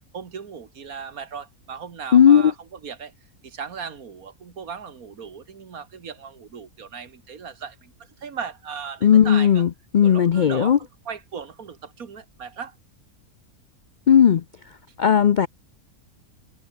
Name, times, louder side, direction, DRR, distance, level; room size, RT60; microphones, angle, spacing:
voice 1, 0.0-3.1 3.4-9.6 10.0-12.8, right 6 dB, 75° right, 2.1 m, -37 dB
voice 2, 2.1-2.5 9.0-10.8 14.1-14.4 15.0-15.5, left 8 dB, 75° left, 0.4 m, -16 dB
omnidirectional pair, 1.6 m